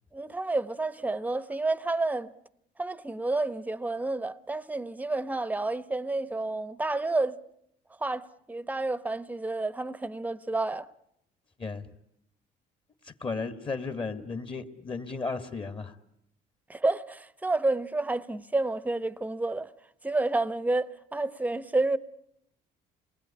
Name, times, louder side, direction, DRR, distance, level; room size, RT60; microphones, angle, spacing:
voice 1, 0.1-2.3 2.8-7.4 8.0-10.9 16.7-19.7 20.0-22.0, right 2 dB, 10° right, 1.0 m, -30 dB
voice 2, 13.2-15.9, left 4 dB, 30° left, 1.8 m, -34 dB
27.0 x 20.0 x 10.0 m
cardioid pair, 110°, 17 cm